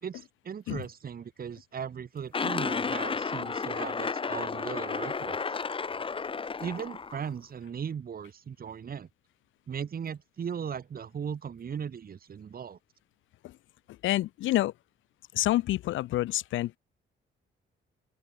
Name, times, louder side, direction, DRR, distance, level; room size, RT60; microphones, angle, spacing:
voice 1, 0.0-5.6 6.6-9.1 9.7-12.8, right 7 dB, 50° right, 2.9 m, -38 dB
sound 1, 2.3-7.3, left 5 dB, 25° left, 0.9 m, -32 dB
voice 2, 14.0-14.7 15.3-16.8, left 15 dB, 80° left, 0.7 m, -28 dB
open air
cardioid pair, 90°, 20 cm